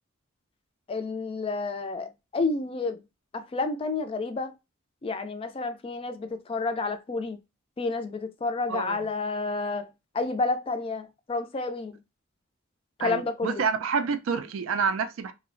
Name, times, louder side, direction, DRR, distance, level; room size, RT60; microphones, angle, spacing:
voice 1, 0.9-3.0 3.3-4.5 5.0-7.4 7.8-12.0 13.0-13.6, left 3 dB, 25° left, 0.3 m, -30 dB
voice 2, 8.7-9.0 13.0-15.3, right 5 dB, 90° right, 0.4 m, -28 dB
2.7 x 2.0 x 2.5 m
head